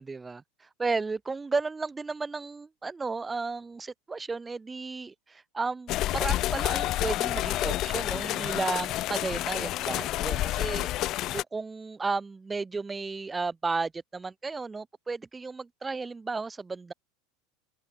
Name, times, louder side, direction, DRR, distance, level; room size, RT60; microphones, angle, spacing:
voice 1, 0.0-10.9 11.3-16.9, right 4 dB, 15° right, 0.8 m, -33 dB
sound 1, 5.9-11.4, left 15 dB, 45° left, 0.6 m, -29 dB
supercardioid pair, 130°, 0 cm